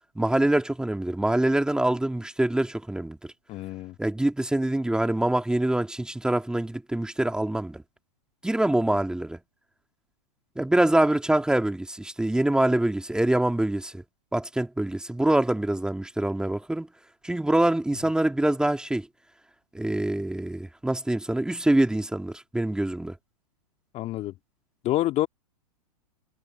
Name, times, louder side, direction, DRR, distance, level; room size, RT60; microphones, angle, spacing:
voice 1, 0.2-3.3 4.0-7.8 8.4-9.4 10.6-14.0 14.3-16.9 17.2-19.1 19.7-23.1, right 1 dB, 5° right, 2.4 m, -25 dB
voice 2, 3.5-4.0 23.9-24.3 24.8-25.3, left 14 dB, 35° left, 2.4 m, -27 dB
hypercardioid pair, 115°, 20 cm